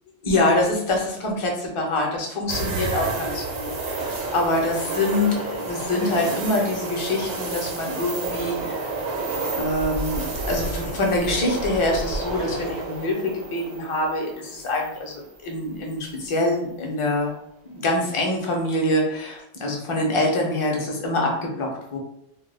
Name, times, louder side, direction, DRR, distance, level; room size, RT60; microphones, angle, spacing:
voice 1, 0.2-8.8 9.5-17.3 17.7-22.0, left 1 dB, 40° left, 0 dB, 0.5 m, -25 dB
sound 1, 2.5-15.5 15.9-16.0 18.4-18.9, right 3 dB, 70° right, 0.8 m, -30 dB
2.2 x 2.1 x 3.2 m, 0.76 s
omnidirectional pair, 1.1 m